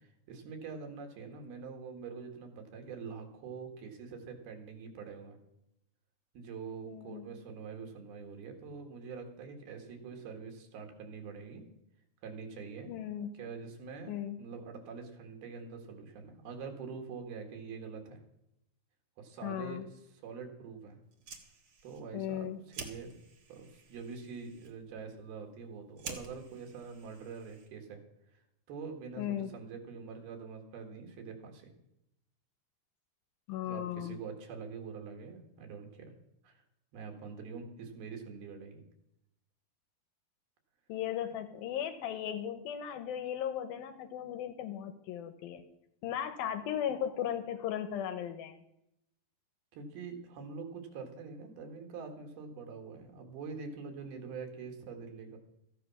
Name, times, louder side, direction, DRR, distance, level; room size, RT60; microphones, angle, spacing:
voice 1, 0.0-5.4 6.3-11.6 12.2-12.9 13.3-18.2 19.2-21.0 21.8-23.2 23.5-28.0 28.3-28.4 28.7-31.7 33.6-36.1 36.4-36.6 36.9-38.8 49.7-55.4, right 5 dB, 70° right, 4 dB, 3.7 m, -45 dB
voice 2, 6.9-7.3 12.9-13.3 14.1-14.4 19.4-19.9 22.1-22.6 29.2-29.5 33.5-34.2 40.9-45.7 46.0-48.6, left 10 dB, 75° left, 9 dB, 2.4 m, -36 dB
Fire, 21.0-27.9, right 4 dB, 55° right, 1.5 m, -50 dB
14.5 x 9.8 x 6.0 m, 0.82 s
omnidirectional pair, 4.6 m